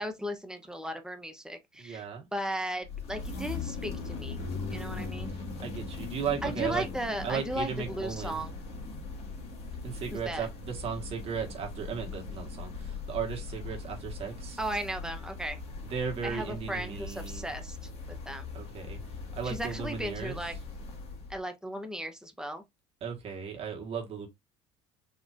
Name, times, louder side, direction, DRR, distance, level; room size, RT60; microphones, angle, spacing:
voice 1, 0.0-2.1 2.3-4.4 4.7-5.3 6.4-8.5 10.1-10.5 14.6-15.6 16.2-17.8 18.3-18.5 19.4-20.5 21.3-22.6, right 1 dB, 5° right, 0.9 m, -36 dB
voice 2, 1.8-2.3 5.6-6.9 7.2-8.4 9.8-14.6 15.8-17.5 18.5-19.0 19.4-20.4 23.0-24.3, right 7 dB, 45° right, 1.6 m, -36 dB
sound 1, 2.8-21.4, left 4 dB, 45° left, 1.7 m, -40 dB
4.1 x 3.0 x 2.5 m
supercardioid pair, 95°, 14 cm